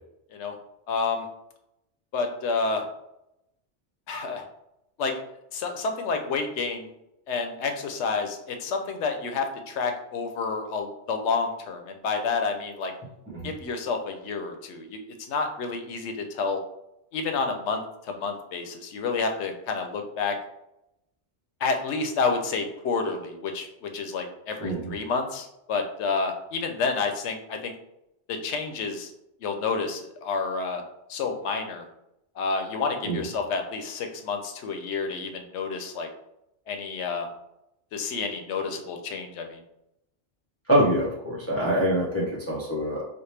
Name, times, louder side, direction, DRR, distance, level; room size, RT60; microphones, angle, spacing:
voice 1, 0.9-1.3 2.1-2.9 4.1-4.4 5.0-5.1 5.5-6.9 7.3-12.9 13.4-15.0 15.3-16.6 17.1-20.4 21.6-27.7 28.3-29.1 29.4-30.8 31.1-31.8 32.4-36.1 36.7-37.3 37.9-39.6, left 4 dB, 75° left, 5 dB, 0.9 m, -29 dB
voice 2, 24.6-24.9 33.0-33.2 40.7-43.0, equal, 15° left, -5 dB, 0.6 m, -25 dB
4.2 x 2.1 x 3.2 m, 0.84 s
omnidirectional pair, 1.2 m